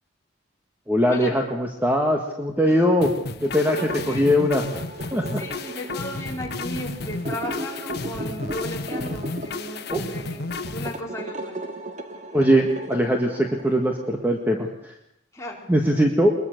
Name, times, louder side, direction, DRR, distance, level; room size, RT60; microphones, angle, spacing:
voice 1, 0.9-3.1 3.4-4.6 5.1-5.4 9.9-10.0 12.3-14.9 15.7-16.3, equal, 10° right, 2 dB, 1.8 m, -21 dB
sound 1, 3.0-11.0, left 3 dB, 50° left, 1.4 m, -33 dB
sound 2, 3.5-14.2, right 1 dB, 35° right, 1.9 m, -37 dB
voice 2, 3.8-4.3 5.3-11.6 15.3-15.6, left 1 dB, 15° left, -2 dB, 4.5 m, -36 dB
22.5 x 21.5 x 6.7 m, 0.75 s
head